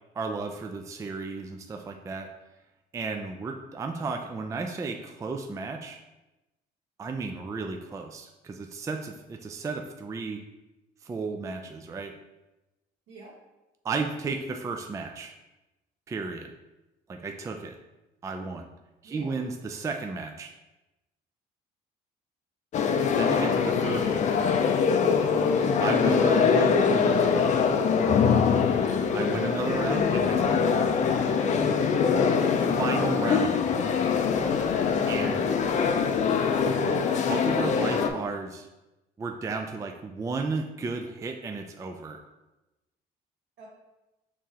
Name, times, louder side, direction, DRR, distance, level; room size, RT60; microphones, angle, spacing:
voice 1, 0.2-2.3 2.9-6.0 7.0-10.4 11.0-12.1 13.8-15.3 16.1-16.5 17.1-17.8 18.2-18.7 19.0-20.5 23.2-24.3 25.8-27.6 29.1-31.0 32.8-33.6 35.1-35.5 37.3-38.7 39.2-42.2, right 4 dB, 20° right, 4 dB, 0.3 m, -33 dB
voice 2, 19.0-19.4 29.4-29.6 32.0-32.7 43.6-43.7, right 3 dB, 75° right, -3 dB, 1.5 m, -45 dB
sound 1, 22.7-38.1, left 6 dB, 45° left, 0.4 m, -23 dB
4.7 x 3.6 x 2.8 m, 1.0 s
cardioid pair, 110°, 17 cm